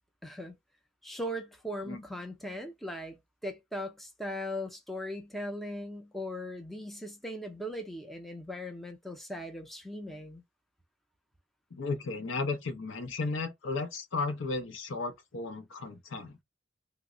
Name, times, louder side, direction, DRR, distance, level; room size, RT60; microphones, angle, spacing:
voice 1, 0.2-0.5 1.0-10.4, equal, ahead, 0.5 m, -39 dB
voice 2, 11.7-16.4, left 3 dB, 80° left, 0.6 m, -34 dB
3.0 x 2.0 x 3.6 m
head